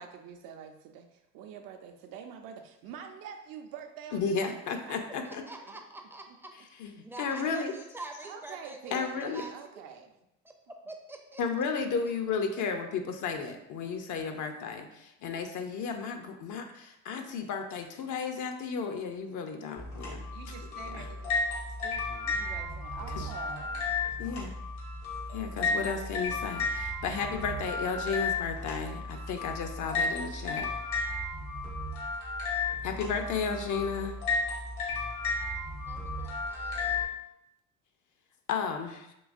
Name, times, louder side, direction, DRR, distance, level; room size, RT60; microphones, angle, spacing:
voice 1, 0.0-5.0 5.3-5.5 8.2-10.1 20.3-21.3 21.8-24.0, right 7 dB, 65° right, 5 dB, 0.6 m, -46 dB
voice 2, 4.1-5.4 6.8-6.9 7.2-7.7 8.9-9.4 11.4-20.3 20.9-21.1 23.1-23.6 24.2-24.5 25.3-30.7 32.8-34.2 38.5-39.1, left 5 dB, 55° left, 5 dB, 0.5 m, -33 dB
voice 3, 5.2-6.5 7.0-9.8 10.4-10.5 10.9-11.4 11.8-12.6 35.9-37.2, right 2 dB, 5° right, 3 dB, 0.5 m, -46 dB
sound 1, 19.8-37.0, left 3 dB, 85° left, 1.5 m, -33 dB
3.8 x 2.9 x 2.5 m, 0.85 s
supercardioid pair, 80°, 36 cm